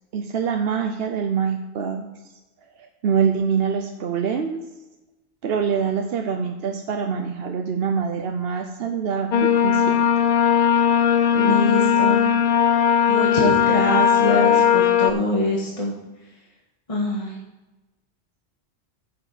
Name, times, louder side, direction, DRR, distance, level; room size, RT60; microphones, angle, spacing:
voice 1, 0.1-2.1 3.0-4.6 5.4-10.1, right 6 dB, 65° right, 4 dB, 0.9 m, -25 dB
sound 1, 9.3-15.1, left 8 dB, 55° left, 0.6 m, -18 dB
voice 2, 11.3-12.3 13.1-15.9 16.9-17.3, left 1 dB, 30° left, -3 dB, 1.6 m, -24 dB
9.8 x 6.8 x 4.9 m, 1.1 s
omnidirectional pair, 1.1 m